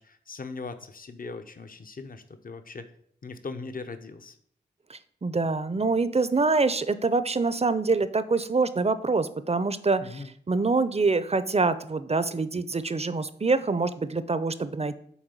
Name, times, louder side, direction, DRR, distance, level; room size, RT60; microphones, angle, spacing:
voice 1, 0.0-2.8 3.2-4.4 10.0-10.3, left 4 dB, 50° left, 8 dB, 0.8 m, -39 dB
voice 2, 4.9-15.0, right 3 dB, 35° right, 14 dB, 0.7 m, -25 dB
7.2 x 4.3 x 6.8 m, 0.64 s
cardioid pair, 55°, 18 cm